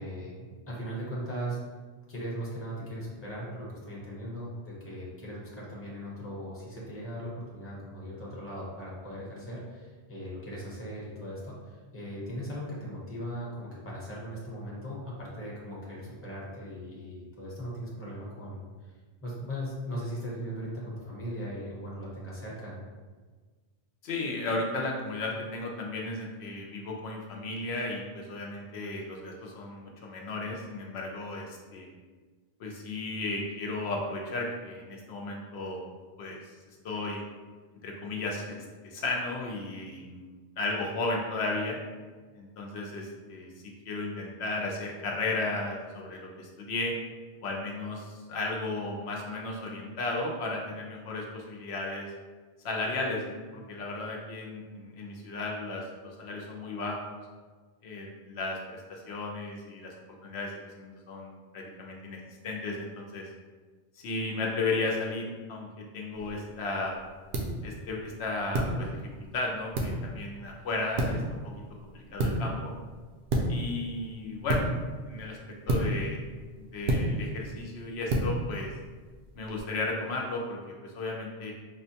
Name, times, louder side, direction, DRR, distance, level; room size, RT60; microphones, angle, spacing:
voice 1, 0.0-1.6 2.1-18.6 19.2-22.8, equal, 15° left, -6 dB, 0.8 m, -38 dB
voice 2, 24.0-31.9 32.6-35.8 36.2-36.4 36.8-37.2 37.8-41.8 42.3-43.5 43.9-46.9 47.4-52.1 52.6-57.2 57.8-59.9 60.2-62.2 62.4-63.3 64.0-67.0 67.6-68.9 69.3-71.5 71.9-72.7 73.5-74.7 75.1-75.4 75.7-76.2 76.6-78.7 79.4-81.5, left 2 dB, 75° left, -1 dB, 0.8 m, -34 dB
sound 1, 66.1-79.6, right 1 dB, 70° right, 0.8 m, -33 dB
5.0 x 2.2 x 2.7 m, 1.4 s
omnidirectional pair, 1.1 m